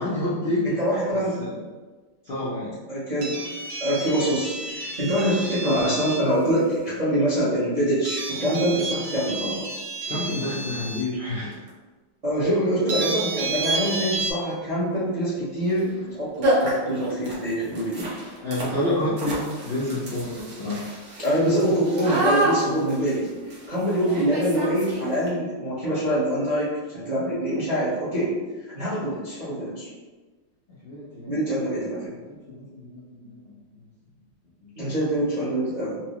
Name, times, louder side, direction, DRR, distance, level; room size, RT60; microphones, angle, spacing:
voice 1, 0.0-0.8 1.1-1.6 2.2-2.7 10.1-11.5 18.4-20.9 30.8-31.3 32.0-33.6 34.6-34.7, left 1 dB, 70° left, -9 dB, 0.5 m, -29 dB
voice 2, 0.6-1.4 2.9-3.4 3.8-9.6 12.2-18.1 21.2-28.3 28.7-29.9 31.3-32.1 34.8-36.0, right 1 dB, 45° right, -10 dB, 0.5 m, -25 dB
sound 1, 3.2-6.3 8.1-11.0 11.7-11.8 12.9-14.3, right 3 dB, 85° right, 1.6 m, -31 dB
sound 2, 12.9-13.0 13.6-14.0 15.7-15.8 16.1-16.2 16.4-25.3, right 1 dB, 65° right, 1.4 m, -29 dB
4.4 x 2.0 x 2.9 m, 1.3 s
omnidirectional pair, 2.1 m